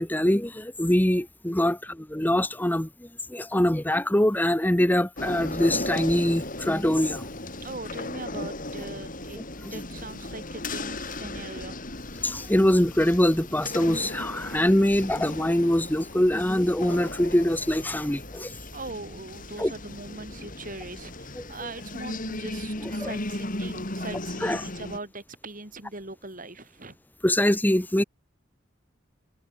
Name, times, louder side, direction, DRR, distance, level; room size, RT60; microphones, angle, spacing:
voice 1, 0.0-7.2 9.4-9.5 12.2-18.5 19.6-19.7 21.4-21.5 23.0-23.1 24.4-24.6 27.2-28.0, left 1 dB, 10° left, 1.2 m, -23 dB
sound 1, 5.2-25.0, left 2 dB, 40° left, 5.8 m, -36 dB
voice 2, 7.6-9.4 9.7-11.8 18.7-27.0, right 2 dB, 40° right, 5.0 m, -40 dB
head